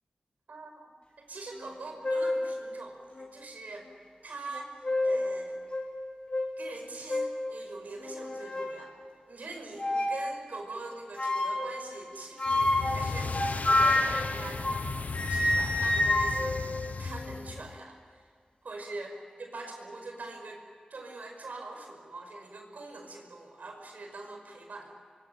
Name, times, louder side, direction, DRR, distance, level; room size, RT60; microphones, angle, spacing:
voice 1, 1.2-3.9 4.2-4.7 5.0-5.6 6.6-8.9 9.3-14.9 15.3-16.6 17.0-18.2 18.6-19.1 19.4-20.6 20.9-24.9, right 3 dB, 85° right, 3 dB, 5.5 m, -43 dB
sound 1, 1.6-1.7 2.0-2.4 3.2-3.3 4.5-5.3 5.7-5.9 6.3-6.5 7.1-7.4 8.0-8.8 9.8-10.2 11.2-11.8 12.4-14.9 15.1-17.5, left 2 dB, 45° left, 5.5 m, -28 dB
sound 2, 12.5-17.8, left 4 dB, 70° left, 0.9 m, -36 dB
27.0 x 23.0 x 8.9 m, 2.1 s
wide cardioid pair, 90°, 3 cm